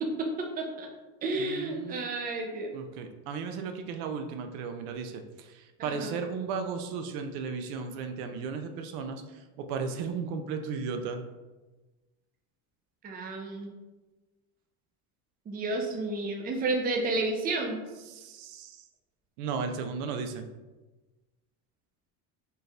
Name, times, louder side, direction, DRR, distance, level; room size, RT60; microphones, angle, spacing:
voice 1, 0.0-0.9 1.2-2.7 5.8-6.1 13.0-13.7 15.5-17.8, right 2 dB, 20° right, 3 dB, 0.5 m, -31 dB
voice 2, 1.4-2.0 2.7-11.2 18.0-18.9 19.4-20.5, right 5 dB, 85° right, 6 dB, 0.6 m, -35 dB
4.5 x 2.5 x 3.2 m, 1.2 s
cardioid pair, 135°, 42 cm